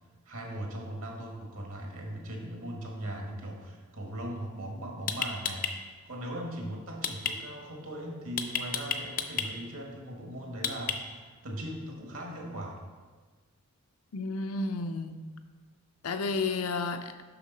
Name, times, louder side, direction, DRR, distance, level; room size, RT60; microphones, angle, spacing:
voice 1, 0.3-12.8, right 1 dB, 70° right, 1 dB, 1.6 m, -39 dB
sound 1, 4.5-4.6 5.1-5.7 7.0-7.3 8.4-9.5 10.6-11.2, left 7 dB, 40° left, 0.5 m, -30 dB
voice 2, 14.1-15.2 16.0-17.1, left 3 dB, 80° left, 8 dB, 0.6 m, -31 dB
6.8 x 5.8 x 5.4 m, 1.4 s
head